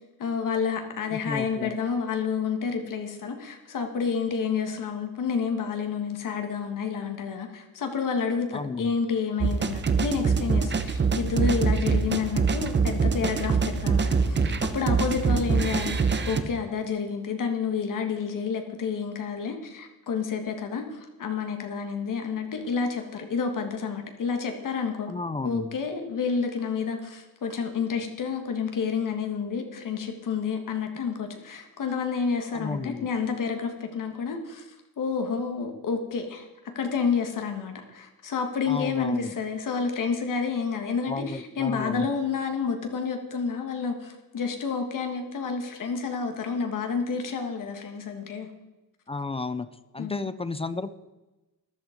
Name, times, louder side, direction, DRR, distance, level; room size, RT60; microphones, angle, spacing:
voice 1, 0.2-25.1 25.4-34.7 35.0-36.5 36.8-48.5 50.0-50.2, left 5 dB, 55° left, 5 dB, 1.7 m, -29 dB
voice 2, 1.1-1.8 8.5-8.9 25.1-25.8 32.5-33.1 38.7-39.3 41.1-42.1 49.1-49.7 49.9-50.9, left 3 dB, 15° left, 14 dB, 0.4 m, -32 dB
sound 1, 9.4-16.4, right 5 dB, 30° right, 0.9 m, -24 dB
14.0 x 11.5 x 5.1 m, 1.1 s
cardioid pair, 155°, 38 cm